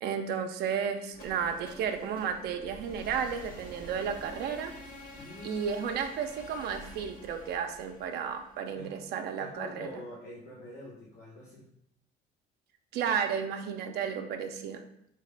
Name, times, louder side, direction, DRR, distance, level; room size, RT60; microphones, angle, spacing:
voice 1, 0.0-4.7 5.4-10.0 12.9-14.8, right 7 dB, 75° right, 5 dB, 0.4 m, -33 dB
sound 1, 1.1-9.0, left 1 dB, 60° left, 1.1 m, -48 dB
voice 2, 5.1-6.0 8.8-8.9 9.4-11.7, left 2 dB, 80° left, -6 dB, 1.0 m, -45 dB
3.7 x 3.3 x 3.3 m, 0.76 s
cardioid pair, 110°, 17 cm